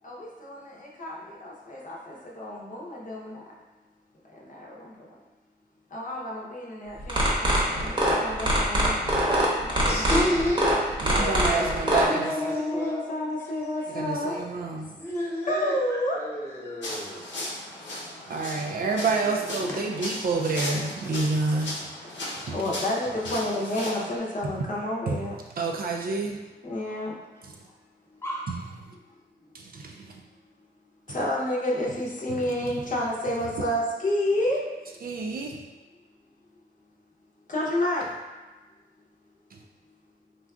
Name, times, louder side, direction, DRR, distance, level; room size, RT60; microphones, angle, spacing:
voice 1, 0.0-3.4 4.2-5.0 5.9-8.9 9.6-10.1 11.9-14.4 15.5-16.2 22.3-25.4 26.6-27.2 31.1-34.6 37.5-38.1, left 1 dB, 45° left, -4 dB, 0.7 m, -30 dB
sound 1, 7.0-12.1, right 1 dB, 25° right, 0.9 m, -23 dB
voice 2, 9.8-13.0 13.4-13.5 14.2-14.7 15.0-15.7 16.1-17.3 19.0-19.6 28.2-28.5, left 1 dB, 15° left, -6 dB, 1.0 m, -31 dB
voice 3, 11.0-12.3 13.9-15.0 18.3-21.8 22.3-22.6 25.1-25.2 25.5-26.4 27.4-27.5 28.5-28.6 29.6-30.2 31.1-31.2 32.3-32.7 35.0-35.7 39.5-39.6, right 3 dB, 55° right, 1 dB, 0.4 m, -29 dB
sound 2, 16.8-24.2, left 1 dB, 90° left, 0.8 m, -36 dB
3.7 x 2.3 x 2.3 m, 1.2 s
cardioid pair, 75°, 19 cm